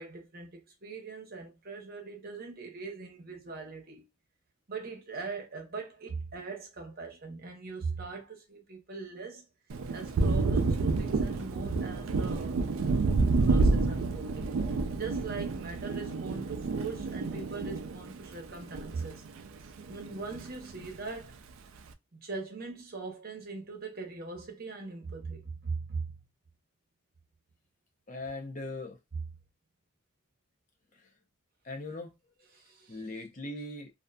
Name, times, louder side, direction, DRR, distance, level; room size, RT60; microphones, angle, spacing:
voice 1, 0.0-4.0 4.7-9.4 9.9-12.6 13.4-19.2 19.6-21.4 22.1-26.1 29.1-29.2 32.5-33.2, right 4 dB, 45° right, 0.8 m, -41 dB
Thunder, 9.7-19.5 19.8-20.9, right 3 dB, 75° right, 0.4 m, -29 dB
voice 2, 28.1-29.0 31.6-32.2 32.9-33.9, left 2 dB, 35° left, 0.6 m, -39 dB
2.5 x 2.5 x 2.2 m
head